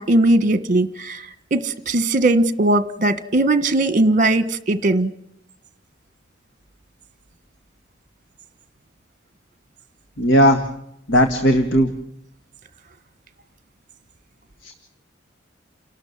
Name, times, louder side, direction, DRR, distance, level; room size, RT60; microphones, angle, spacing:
voice 1, 0.0-5.1, right 2 dB, 45° right, 14 dB, 1.5 m, -19 dB
voice 2, 10.2-10.6 11.1-11.9 14.6-14.7, equal, 75° left, 7 dB, 2.0 m, -16 dB
29.5 x 12.5 x 9.5 m, 0.74 s
head